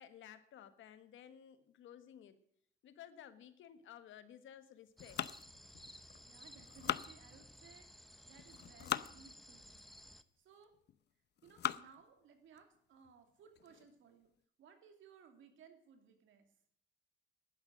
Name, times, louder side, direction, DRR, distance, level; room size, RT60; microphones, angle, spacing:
voice 1, 0.0-2.4 2.8-5.2, left 10 dB, 75° left, 11 dB, 1.5 m, -55 dB
sound 1, 5.0-6.2 6.6-7.7 8.4-9.1 9.8-9.9 10.6-11.0 11.4-12.0 12.6-12.7 13.1-13.2 13.6-13.9, left 11 dB, 60° left, 0.7 m, -41 dB
sound 2, 5.0-10.2, equal, ahead, 0.8 m, -57 dB
voice 2, 6.2-9.8 10.4-10.7 11.4-14.3 14.6-16.5, right 6 dB, 80° right, 5 dB, 2.9 m, -62 dB
11.5 x 10.5 x 6.6 m, 0.69 s
cardioid pair, 90°, 20 cm